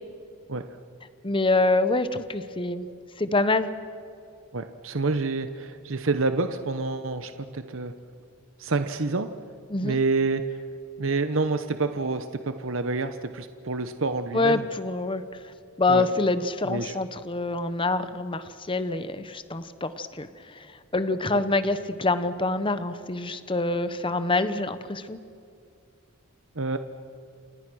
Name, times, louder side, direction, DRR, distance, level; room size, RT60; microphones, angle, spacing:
voice 1, 1.2-2.9 3.2-3.7 9.7-10.0 14.3-15.2 15.8-20.7 20.9-25.2, left 2 dB, 25° left, 12 dB, 0.9 m, -26 dB
voice 2, 4.5-7.9 8.6-9.3 9.8-10.6 11.0-14.6 15.9-16.1 16.6-17.0 26.6-26.8, right 3 dB, 60° right, 9 dB, 1.0 m, -28 dB
29.0 x 27.0 x 6.3 m, 2.4 s
head